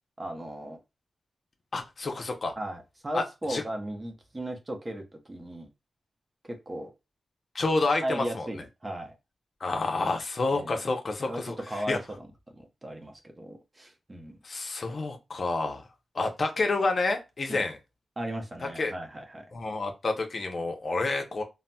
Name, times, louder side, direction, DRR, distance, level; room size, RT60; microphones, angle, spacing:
voice 1, 0.2-0.8 2.6-5.7 6.5-6.9 8.0-9.2 10.5-10.8 11.3-12.3 12.6-14.4 17.5-17.6 18.2-19.5, right 1 dB, 25° right, 0.7 m, -36 dB
voice 2, 1.7-2.5 3.1-3.2 3.5-3.6 7.5-8.5 9.6-11.6 11.9-12.0 14.4-15.8 16.1-17.8 18.8-18.9 19.5-21.4, left 3 dB, 50° left, 0.6 m, -29 dB
3.9 x 2.1 x 2.2 m
wide cardioid pair, 90°, 0 cm